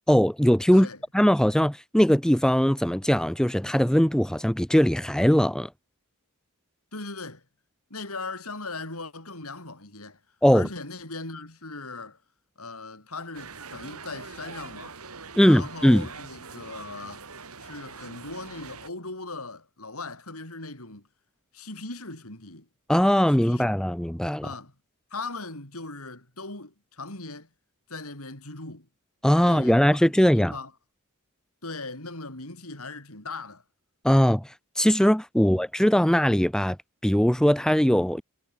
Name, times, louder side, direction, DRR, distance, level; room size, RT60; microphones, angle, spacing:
voice 1, 0.1-0.9 1.1-5.7 10.4-10.7 15.4-16.1 22.9-24.5 29.2-30.5 34.0-36.8 37.0-38.2, equal, 5° left, 0.7 m, -20 dB
voice 2, 6.9-7.4 7.9-10.2 10.5-12.2 12.6-15.0 15.4-17.3 17.6-21.1 21.5-22.7 23.3-23.7 24.4-24.7 25.1-27.5 27.9-28.9 29.4-30.7 31.6-33.6 35.4-35.6, left 3 dB, 70° left, 7.6 m, -39 dB
sound 1, 13.3-18.9, right 4 dB, 75° right, 4.2 m, -43 dB
head